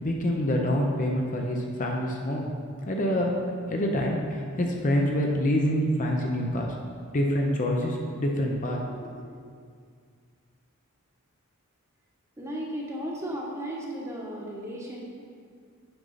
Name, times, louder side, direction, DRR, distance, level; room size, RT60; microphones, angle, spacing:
voice 1, 0.0-2.5 2.9-3.3 3.7-6.7 7.1-9.3, equal, 40° left, 1 dB, 0.6 m, -26 dB
voice 2, 12.4-15.0, equal, 15° right, -3 dB, 1.1 m, -35 dB
7.9 x 5.4 x 4.0 m, 2.1 s
head